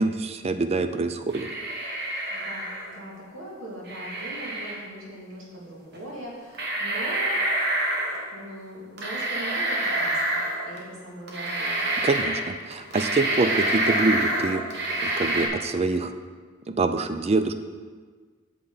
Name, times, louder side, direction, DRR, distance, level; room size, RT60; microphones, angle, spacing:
voice 1, 0.0-1.5 12.0-14.6 15.0-16.1 16.7-17.5, right 3 dB, 30° right, 9 dB, 0.4 m, -25 dB
sound 1, 1.3-3.0 3.9-4.8 5.9-6.0 6.5-8.2 9.0-10.8 11.3-12.4 12.7-15.5, right 1 dB, 55° right, 1.3 m, -27 dB
voice 2, 2.3-7.4 8.3-10.4 10.7-11.8, right 1 dB, 85° right, -4 dB, 2.5 m, -40 dB
8.4 x 6.9 x 4.0 m, 1.5 s
head